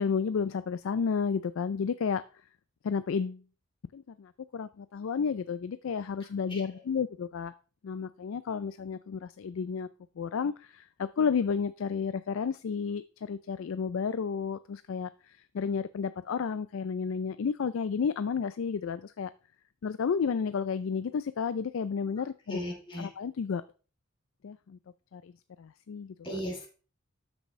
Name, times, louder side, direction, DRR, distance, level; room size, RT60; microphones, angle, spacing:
voice 1, 0.0-2.2 2.8-3.4 3.9-7.5 7.8-9.9 10.2-15.1 15.5-19.3 19.8-22.6 23.0-23.6 24.4-24.8 25.1-25.3 25.6-26.4, left 6 dB, 65° left, 14 dB, 0.4 m, -32 dB
voice 2, 22.5-23.1 26.2-26.7, equal, 20° left, 0 dB, 2.8 m, -36 dB
12.5 x 6.1 x 3.1 m, 0.38 s
head